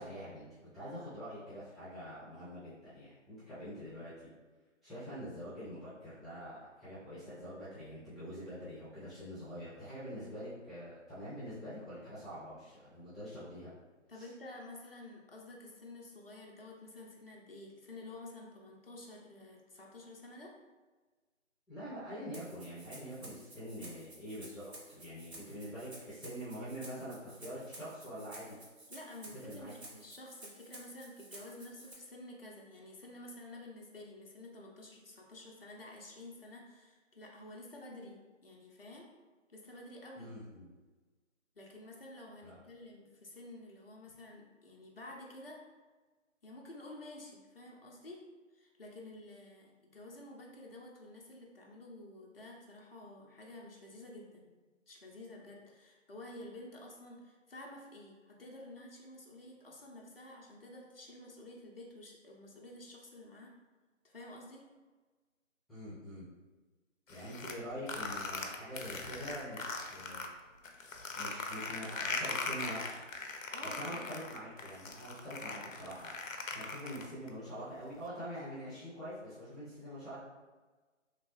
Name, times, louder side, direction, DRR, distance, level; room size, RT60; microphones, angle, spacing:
voice 1, 0.0-4.3 4.8-13.7 14.1-14.3 21.7-28.6 29.4-29.7 40.2-40.7 42.4-42.6 65.7-66.3 67.1-70.2 71.1-72.9 73.6-76.1 76.5-80.2, equal, ahead, -16 dB, 0.5 m, -45 dB
voice 2, 14.1-20.5 28.9-39.1 39.5-40.3 41.6-45.6 46.4-48.2 48.5-54.5 54.9-63.5 64.0-64.6 67.2-67.3 73.5-74.0, left 1 dB, 45° left, -2 dB, 0.7 m, -50 dB
Rattle (instrument), 22.3-31.9, right 2 dB, 55° right, 0.9 m, -53 dB
sound 1, 67.1-70.3 70.6-77.3, left 3 dB, 80° left, 0.6 m, -40 dB
3.0 x 2.9 x 3.0 m, 1.3 s
figure-of-eight pair, 165°, 39 cm